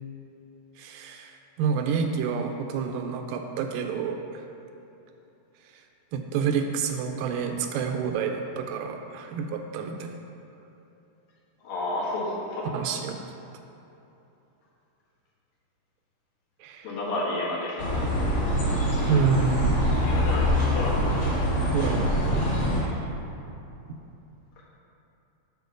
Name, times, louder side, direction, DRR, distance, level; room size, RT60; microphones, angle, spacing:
voice 1, 0.8-4.4 6.1-10.2 12.7-13.2 16.6-17.0 19.1-19.8 21.7-23.0, right 6 dB, 80° right, 4 dB, 2.1 m, -28 dB
voice 2, 11.6-12.6 16.8-17.9 20.0-21.2, left 2 dB, 75° left, -6 dB, 3.4 m, -31 dB
sound 1, 17.8-22.8, equal, 50° left, 2.8 m, -24 dB
8.2 x 4.2 x 6.5 m, 2.9 s
omnidirectional pair, 4.1 m